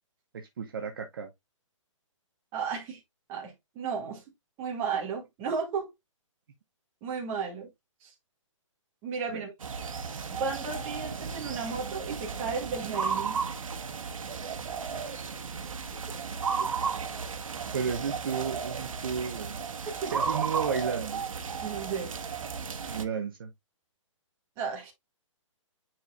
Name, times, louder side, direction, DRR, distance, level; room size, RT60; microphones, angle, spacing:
voice 1, 0.3-1.3 9.3-9.5 15.0-15.1 17.7-19.6 20.1-21.3 22.9-23.5, right 6 dB, 45° right, 0.9 m, -33 dB
voice 2, 2.5-3.0 3.3-4.2 4.6-5.9 7.0-7.7 8.0-8.1 9.0-9.5 10.3-13.4 20.0-20.2 21.6-22.1 24.6-24.9, right 5 dB, 15° right, 1.7 m, -34 dB
sound 1, 9.6-23.0, right 6 dB, 85° right, 1.3 m, -34 dB
10.0 x 4.4 x 2.3 m
hypercardioid pair, 175°, 17 cm